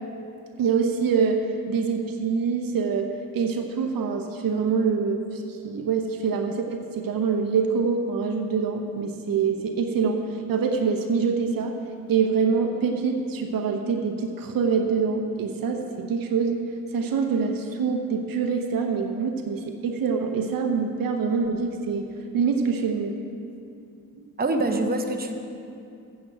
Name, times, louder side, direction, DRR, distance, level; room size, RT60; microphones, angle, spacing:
voice 1, 0.6-3.1 3.3-11.8 12.1-16.6 16.9-23.2, right 5 dB, 75° right, 4 dB, 0.9 m, -25 dB
voice 2, 24.4-25.3, right 2 dB, 25° right, 4 dB, 1.0 m, -24 dB
8.7 x 6.1 x 7.7 m, 2.5 s
cardioid pair, 65°, 35 cm